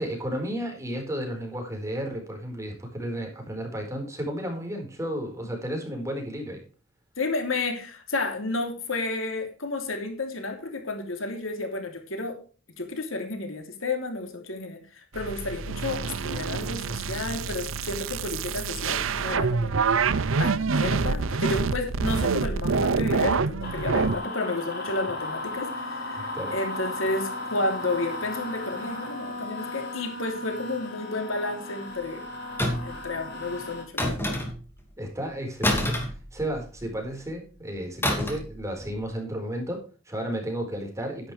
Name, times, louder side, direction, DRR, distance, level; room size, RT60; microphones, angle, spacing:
voice 1, 0.0-6.6 26.3-26.5 35.0-36.0 36.3-41.3, equal, 15° right, 2 dB, 4.5 m, -33 dB
voice 2, 7.2-12.4 12.8-19.7 20.4-32.3 32.8-34.3, left 2 dB, 85° left, 5 dB, 3.1 m, -31 dB
sound 1, 15.1-24.1, right 5 dB, 75° right, 0.6 m, -26 dB
sound 2, 23.6-33.8, left 2 dB, 55° left, 5.7 m, -36 dB
sound 3, 32.6-33.0 34.0-34.7 35.6-36.8 38.0-38.5 38.8-39.0, left 1 dB, 10° left, 2.7 m, -27 dB
11.5 x 11.0 x 3.3 m, 0.37 s
head